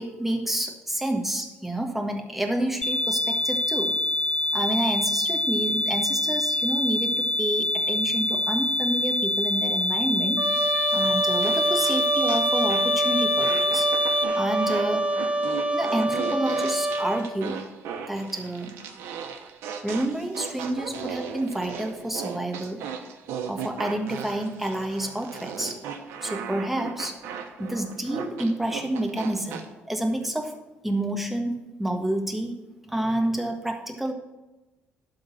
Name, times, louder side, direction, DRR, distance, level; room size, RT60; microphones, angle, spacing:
voice 1, 0.0-4.0 4.5-13.9 14.3-15.1 15.7-17.6 18.1-18.8 19.8-22.8 23.5-25.8 26.2-27.2 27.6-30.6 30.8-32.5 32.8-34.1, right 1 dB, 5° right, 3 dB, 1.4 m, -29 dB
sound 1, 2.8-14.2, left 1 dB, 20° left, 0.4 m, -25 dB
Trumpet, 10.4-17.2, right 1 dB, 30° right, 1.2 m, -26 dB
sound 2, 11.4-13.0 13.4-29.6, right 7 dB, 90° right, 1.0 m, -36 dB
11.5 x 3.9 x 7.3 m, 1.1 s
cardioid pair, 105°, 4 cm